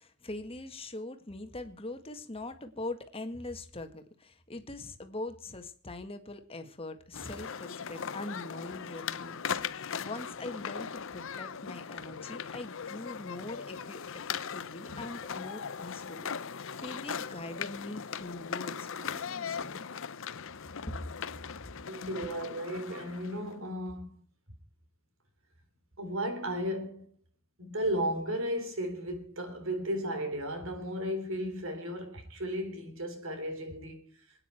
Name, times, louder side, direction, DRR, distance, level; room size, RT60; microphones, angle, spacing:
voice 1, 0.0-19.9 20.9-21.0, left 2 dB, 25° left, 1.8 m, -42 dB
sound 1, 7.1-23.6, left 7 dB, 60° left, 0.7 m, -39 dB
voice 2, 19.0-19.3 21.9-24.2 26.0-27.1 27.6-34.1, equal, 60° right, 3.7 m, -35 dB
27.0 x 9.9 x 4.5 m
head